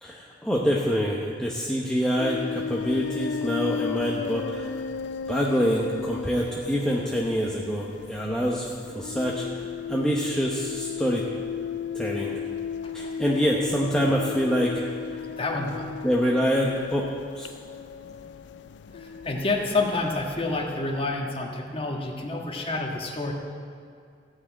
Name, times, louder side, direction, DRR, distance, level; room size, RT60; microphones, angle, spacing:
voice 1, 0.0-4.8 5.3-11.3 11.9-12.4 12.9-14.8 15.1-15.2 16.0-17.5, equal, 5° left, -3 dB, 0.9 m, -26 dB
sound 1, 2.2-21.1, left 6 dB, 75° left, 0.4 m, -35 dB
voice 2, 15.4-15.9 18.9-23.3, left 3 dB, 30° left, 0 dB, 1.5 m, -29 dB
15.0 x 6.2 x 8.7 m, 2.3 s
head